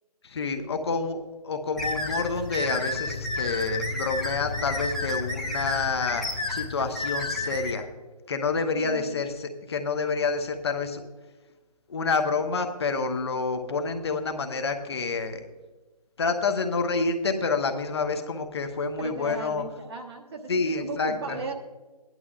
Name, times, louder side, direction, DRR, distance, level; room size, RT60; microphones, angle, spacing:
voice 1, 0.2-7.9 8.3-11.0 11.9-15.5 16.2-19.6 20.5-21.4, left 4 dB, 40° left, 5 dB, 1.0 m, -28 dB
sound 1, 1.8-7.7, left 4 dB, 55° left, 0.5 m, -38 dB
sound 2, 1.8-7.7, left 2 dB, ahead, 1.0 m, -31 dB
voice 2, 8.7-9.1 19.0-21.5, right 4 dB, 40° right, 3 dB, 1.3 m, -36 dB
15.5 x 11.0 x 2.4 m, 1.2 s
figure-of-eight pair, 145°, 20 cm